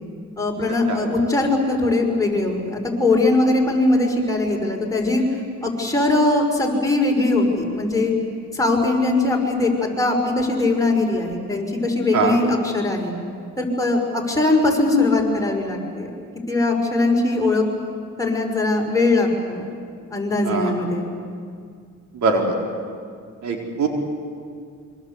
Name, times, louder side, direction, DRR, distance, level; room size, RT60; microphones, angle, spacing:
voice 1, 0.4-5.2 5.6-8.1 8.5-13.1 13.6-16.1 16.5-17.6 18.2-19.6 20.1-21.1, left 2 dB, 10° left, -1 dB, 5.8 m, -20 dB
voice 2, 22.1-22.5 23.4-23.9, right 4 dB, 70° right, 1 dB, 4.3 m, -21 dB
26.5 x 24.5 x 8.2 m, 2.2 s
cardioid pair, 90°, 30 cm